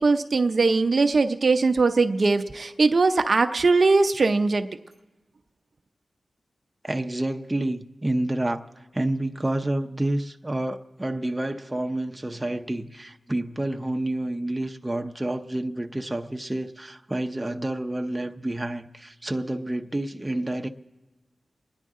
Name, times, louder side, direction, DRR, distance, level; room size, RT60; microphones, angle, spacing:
voice 1, 0.0-4.7, right 3 dB, 55° right, 0.6 m, -20 dB
voice 2, 6.8-20.7, right 1 dB, 15° right, 0.7 m, -29 dB
29.5 x 10.5 x 3.7 m
cardioid pair, 60°, 0 cm